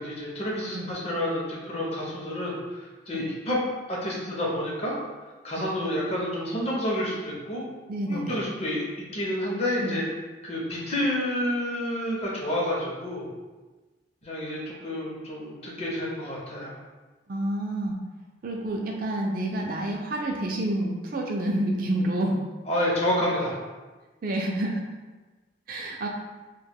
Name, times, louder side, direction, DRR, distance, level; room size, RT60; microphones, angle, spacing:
voice 1, 0.0-3.6 3.9-4.9 5.4-7.6 8.1-8.8 9.1-10.0 10.4-13.3 14.2-16.8 22.7-23.5, left 1 dB, 35° left, -4 dB, 0.5 m, -29 dB
voice 2, 7.9-8.4 9.8-9.9 17.3-18.0 18.4-22.4 24.2-24.8 25.7-26.1, right 1 dB, 50° right, 0 dB, 0.3 m, -28 dB
2.2 x 2.1 x 3.3 m, 1.2 s
head